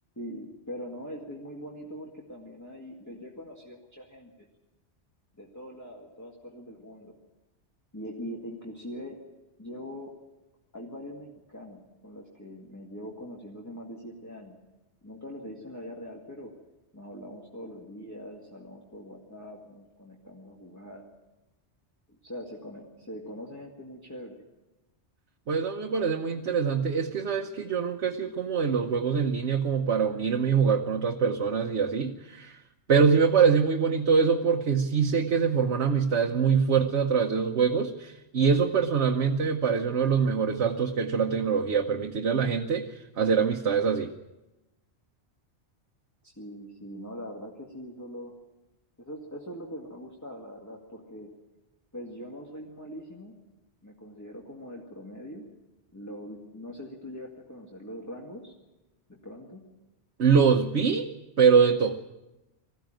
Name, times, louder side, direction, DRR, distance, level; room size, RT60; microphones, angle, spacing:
voice 1, 0.2-4.5 5.4-7.1 7.9-9.2 9.6-10.1 10.7-14.6 15.0-16.5 16.9-21.0 22.1-24.4 46.2-48.3 49.0-51.3 51.9-53.4 53.8-55.5 55.9-58.5 59.1-59.6, equal, 15° left, -2 dB, 2.0 m, -42 dB
voice 2, 25.5-32.6 32.9-44.1 60.2-61.1 61.4-62.0, right 6 dB, 75° right, 3 dB, 1.2 m, -24 dB
21.0 x 15.0 x 9.0 m, 1.0 s
omnidirectional pair, 1.2 m